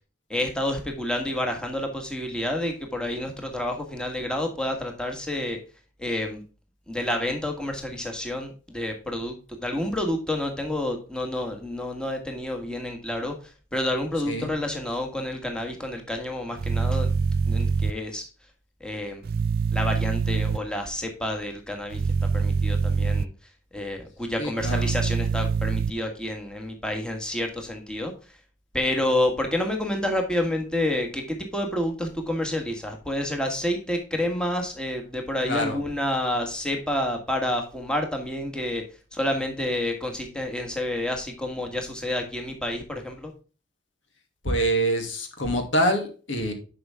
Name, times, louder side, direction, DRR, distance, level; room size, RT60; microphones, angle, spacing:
voice 1, 0.3-5.6 6.0-6.4 6.9-9.4 9.6-13.3 13.7-17.1 17.5-18.2 18.8-19.2 19.7-22.0 22.3-23.3 23.7-28.1 28.7-38.8 39.1-43.3, left 1 dB, 5° left, 3 dB, 1.6 m, -29 dB
voice 2, 14.1-14.5 24.4-24.9 35.4-35.8 44.4-46.5, right 1 dB, 90° left, 4 dB, 2.6 m, -26 dB
sound 1, 16.6-17.9 19.2-20.6 21.9-23.2 24.6-25.9, right 5 dB, 50° right, 0.3 m, -24 dB
11.0 x 5.6 x 3.6 m, 0.36 s
head